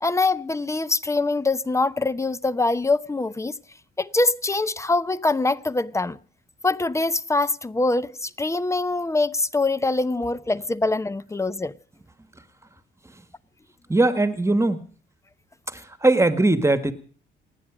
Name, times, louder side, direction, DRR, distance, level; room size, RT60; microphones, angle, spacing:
voice 1, 0.0-3.5 4.0-6.2 6.6-11.7, left 2 dB, 15° left, 0.8 m, -24 dB
voice 2, 13.9-14.9 15.7-16.9, right 2 dB, 15° right, 1.6 m, -20 dB
28.5 x 9.7 x 5.0 m
cardioid pair, 90°, 20 cm